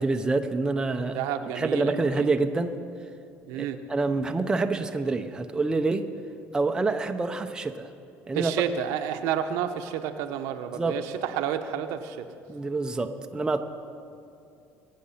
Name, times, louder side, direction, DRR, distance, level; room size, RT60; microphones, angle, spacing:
voice 1, 0.0-1.2 1.6-2.8 3.5-6.0 6.5-7.9 8.3-8.5 10.7-11.0 12.5-13.6, right 3 dB, 15° right, 6 dB, 0.7 m, -27 dB
voice 2, 1.1-2.3 3.5-3.8 8.3-12.3, right 9 dB, 85° right, 7 dB, 0.9 m, -30 dB
22.0 x 8.6 x 5.7 m, 2.5 s
cardioid pair, 130°, 5 cm